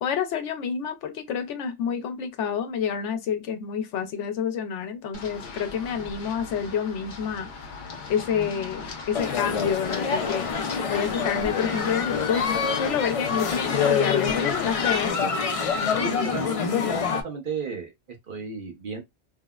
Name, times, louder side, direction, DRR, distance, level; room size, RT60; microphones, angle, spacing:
voice 1, 0.0-7.5 8.1-10.5 10.9-12.5 12.7-15.2, left 7 dB, 85° left, 1.0 m, -28 dB
Run, 5.1-15.1, left 4 dB, 50° left, 0.8 m, -37 dB
sound 1, 9.1-17.2, left 6 dB, 65° left, 0.3 m, -26 dB
voice 2, 16.0-17.0 17.2-19.0, right 4 dB, 50° right, 0.9 m, -34 dB
3.5 x 2.0 x 2.3 m
omnidirectional pair, 1.2 m